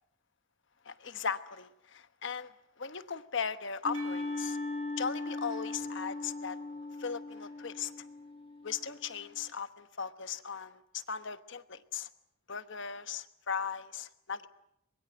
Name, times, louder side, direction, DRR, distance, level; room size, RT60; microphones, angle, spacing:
voice 1, 0.8-4.6 5.0-6.6 7.0-8.1 8.6-12.1 12.5-14.5, left 6 dB, 55° left, 11 dB, 1.1 m, -38 dB
sound 1, 3.8-9.4, left 3 dB, 25° left, 1.1 m, -39 dB
Percussion / Church bell, 3.9-9.0, equal, 85° right, 7.9 m, -49 dB
24.0 x 22.0 x 7.8 m, 0.78 s
head